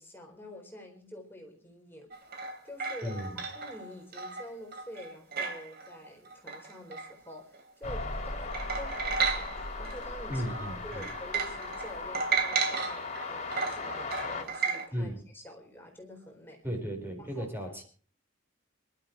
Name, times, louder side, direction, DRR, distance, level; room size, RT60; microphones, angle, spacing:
voice 1, 0.0-2.1 2.6-16.6 17.2-17.5, left 1 dB, 10° left, 1 dB, 4.1 m, -47 dB
sound 1, 2.1-7.8 8.2-8.3 8.5-10.0 10.3-14.9, right 5 dB, 50° right, 2.9 m, -34 dB
voice 2, 3.0-3.4 10.3-11.0 14.9-15.2 16.6-17.8, equal, 10° right, 3 dB, 4.3 m, -35 dB
sound 2, 7.8-14.4, left 3 dB, 35° left, 3.5 m, -38 dB
26.5 x 12.5 x 3.0 m, 0.41 s
head